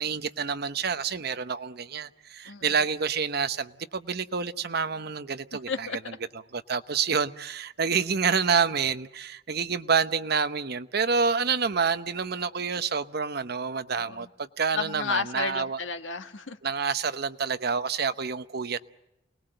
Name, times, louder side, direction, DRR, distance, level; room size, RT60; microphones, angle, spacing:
voice 1, 0.0-5.9 6.5-15.8 16.6-18.8, right 5 dB, 55° right, 0.9 m, -28 dB
voice 2, 2.4-2.8 5.7-6.2 14.0-14.3 14.7-16.6, left 5 dB, 80° left, 1.4 m, -32 dB
28.5 x 20.0 x 7.8 m
head